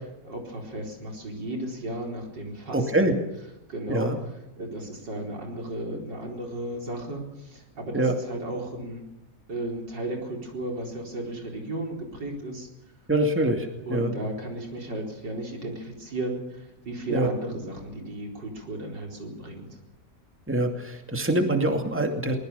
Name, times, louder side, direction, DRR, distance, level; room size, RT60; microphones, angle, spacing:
voice 1, 0.2-3.1 3.7-4.1 4.6-9.0 9.5-12.7 13.9-19.7, right 1 dB, 85° right, 2 dB, 5.1 m, -34 dB
voice 2, 2.7-3.1 3.9-4.2 7.9-8.1 13.1-14.1 17.1-17.3 20.5-22.4, right 1 dB, 5° right, 4 dB, 2.4 m, -24 dB
23.5 x 20.5 x 6.9 m, 0.89 s
omnidirectional pair, 1.9 m